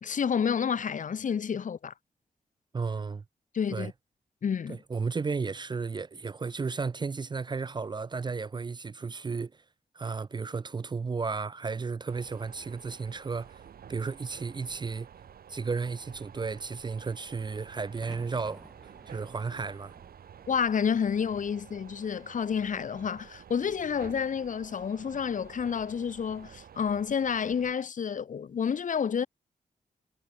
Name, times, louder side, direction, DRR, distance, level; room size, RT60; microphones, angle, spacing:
voice 1, 0.0-1.9 3.5-3.9 4.4-4.8 20.5-29.3, left 7 dB, 60° left, 0.8 m, -29 dB
voice 2, 2.7-3.2 3.7-3.9 4.7-9.5 9.9-13.6 13.9-15.1 15.5-19.9, right 4 dB, 30° right, 0.4 m, -34 dB
sound 1, 12.1-27.7, right 8 dB, 90° right, 4.8 m, -51 dB
sound 2, 17.9-22.0 22.3-23.1 25.0-25.4, equal, 5° right, 2.1 m, -55 dB
cardioid pair, 75°, 15 cm